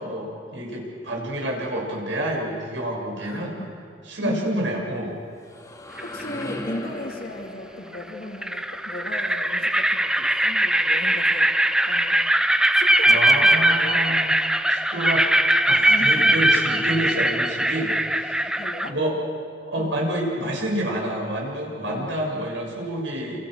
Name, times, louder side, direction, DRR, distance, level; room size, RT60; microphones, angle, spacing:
voice 1, 0.0-3.6 4.1-5.2 13.1-14.3 14.7-15.3 15.7-18.6 18.8-19.1 19.6-23.4, right 1 dB, 85° right, -1 dB, 7.0 m, -28 dB
voice 2, 3.2-3.8 4.2-4.6 6.1-12.2 12.7-14.2 15.9-16.5 18.5-19.0 19.7-20.0 21.8-22.2, left 1 dB, 55° left, 1 dB, 2.6 m, -36 dB
sound 1, 5.1-10.9, left 1 dB, 20° left, 2.4 m, -39 dB
sound 2, 6.0-6.4 7.9-8.0 8.4-18.9, right 1 dB, 5° right, 0.6 m, -20 dB
29.0 x 28.5 x 6.5 m, 2.3 s
head